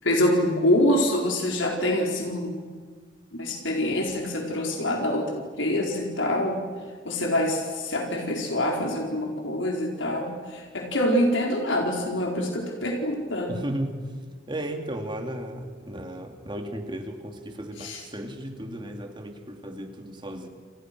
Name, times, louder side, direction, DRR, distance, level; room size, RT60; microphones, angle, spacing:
voice 1, 0.0-2.6 3.3-6.6 7.0-13.5 17.8-18.0, left 1 dB, 85° left, 0 dB, 4.7 m, -25 dB
voice 2, 13.5-14.0 14.5-20.5, right 1 dB, 25° right, 4 dB, 2.7 m, -35 dB
29.5 x 28.5 x 6.2 m, 1.5 s
head